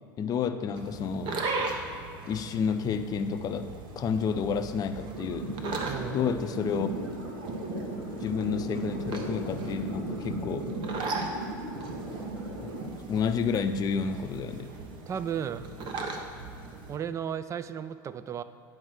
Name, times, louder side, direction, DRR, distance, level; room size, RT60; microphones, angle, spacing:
voice 1, 0.2-1.4 2.3-5.6 6.1-7.0 8.2-10.7 12.9-14.7, left 6 dB, 35° left, 9 dB, 0.6 m, -30 dB
sound 1, 0.7-17.0, right 3 dB, 45° right, 1.1 m, -38 dB
sound 2, 4.9-12.9, right 2 dB, 80° right, 1.9 m, -36 dB
voice 2, 5.9-6.3 15.1-15.7 16.1-16.3 16.9-18.4, right 8 dB, 25° right, 13 dB, 0.4 m, -35 dB
9.4 x 4.4 x 6.3 m, 2.3 s
hypercardioid pair, 90°, 11 cm